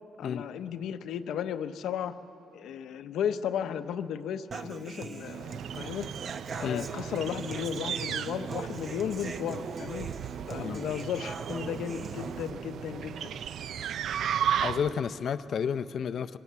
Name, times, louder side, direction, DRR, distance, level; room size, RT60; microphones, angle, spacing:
voice 1, 0.2-2.1 2.5-5.5 5.7-6.1 6.6-10.1 10.5-13.4, left 8 dB, 85° left, 10 dB, 0.8 m, -34 dB
Human voice / Acoustic guitar, 4.5-12.5, right 5 dB, 45° right, 0.8 m, -41 dB
sound 1, 5.2-15.1, right 9 dB, 70° right, 0.4 m, -35 dB
voice 2, 14.6-16.4, left 7 dB, 55° left, 12 dB, 0.5 m, -31 dB
22.0 x 18.0 x 8.1 m, 2.8 s
cardioid pair, 145°, 0 cm